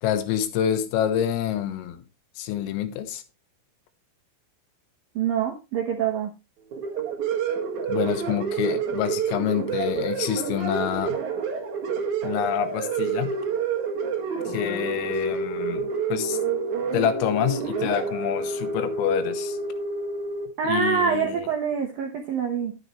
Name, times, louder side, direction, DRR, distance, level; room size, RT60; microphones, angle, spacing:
voice 1, 0.0-2.0 2.4-3.2 7.9-11.2 12.2-13.4 14.5-16.4 16.9-19.6 20.6-21.5, left 10 dB, 85° left, 3.8 m, -27 dB
voice 2, 5.2-6.3 20.6-22.8, right 7 dB, 75° right, 2.1 m, -25 dB
sound 1, 6.7-20.5, right 5 dB, 50° right, 2.5 m, -28 dB
11.0 x 9.6 x 3.1 m
omnidirectional pair, 5.8 m